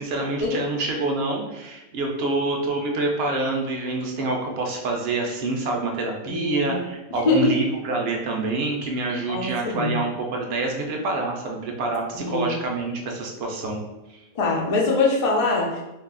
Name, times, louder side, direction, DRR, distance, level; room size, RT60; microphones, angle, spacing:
voice 1, 0.0-13.8, right 2 dB, 60° right, 0 dB, 0.7 m, -27 dB
voice 2, 6.3-6.7 7.3-7.6 9.3-10.0 12.1-12.5 14.4-15.8, left 2 dB, 70° left, -2 dB, 0.3 m, -23 dB
2.6 x 2.4 x 3.7 m, 0.99 s
omnidirectional pair, 1.5 m